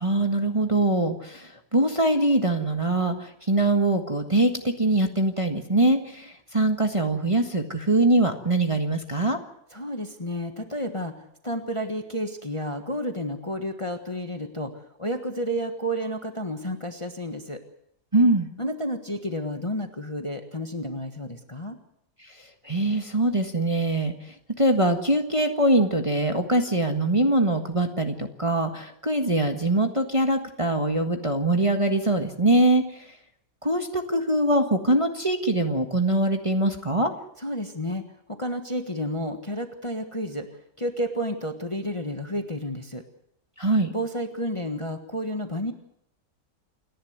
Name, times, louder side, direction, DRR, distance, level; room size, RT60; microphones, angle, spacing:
voice 1, 0.0-9.4 18.1-18.5 22.6-24.1 24.6-32.8 33.6-37.1 43.6-43.9, right 1 dB, 20° right, 4 dB, 1.5 m, -23 dB
voice 2, 9.7-14.7 15.0-17.6 18.6-21.8 37.4-38.0 38.4-40.5 40.8-43.0 43.9-45.7, equal, 20° left, 6 dB, 1.4 m, -31 dB
28.5 x 11.5 x 9.5 m, 0.73 s
omnidirectional pair, 1.8 m